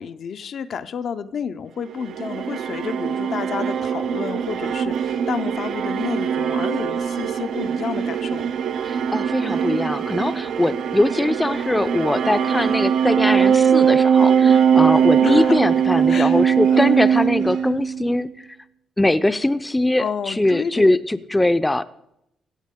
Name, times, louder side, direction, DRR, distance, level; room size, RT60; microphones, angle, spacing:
voice 1, 0.0-8.5 15.2-15.6 16.1-16.4 16.7-17.0 20.0-21.0, left 7 dB, 60° left, 10 dB, 0.5 m, -30 dB
sound 1, 1.9-18.2, right 7 dB, 70° right, 0.4 m, -21 dB
sound 2, 4.4-17.8, right 5 dB, 85° right, 2.1 m, -51 dB
voice 2, 8.8-18.3 19.0-21.8, left 1 dB, 10° left, 12 dB, 0.4 m, -21 dB
15.5 x 7.4 x 3.6 m, 0.81 s
cardioid pair, 80°, 0 cm